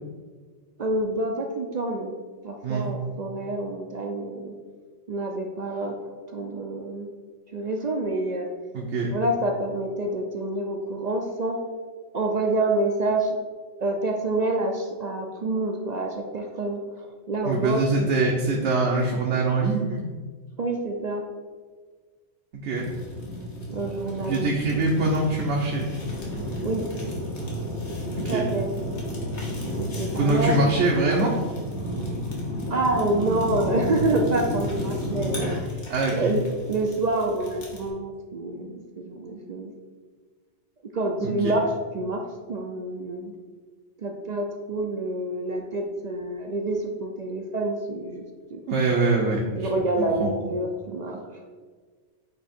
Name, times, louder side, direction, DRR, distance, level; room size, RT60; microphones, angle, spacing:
voice 1, 0.8-2.1 2.4-4.5 5.1-6.0 6.3-7.1 7.5-8.5 9.1-11.6 12.1-13.3 13.8-18.1 20.6-21.2 23.7-24.9 26.6-26.9 28.3-28.7 29.8-30.8 32.7-35.6 36.1-39.7 40.9-41.6 41.9-42.2 42.5-43.3 44.0-48.2 48.5-48.6 49.6-51.4, right 2 dB, 50° right, 2 dB, 0.5 m, -27 dB
voice 2, 8.7-9.1 17.4-20.0 22.5-22.9 24.3-25.9 28.2-28.5 30.2-31.4 35.9-36.3 41.2-41.5 48.7-49.7 50.0-50.3, right 3 dB, 75° right, -2 dB, 1.1 m, -24 dB
Fire, 22.7-37.9, equal, 70° left, 1.7 m, -32 dB
8.6 x 2.9 x 4.3 m, 1.5 s
omnidirectional pair, 1.2 m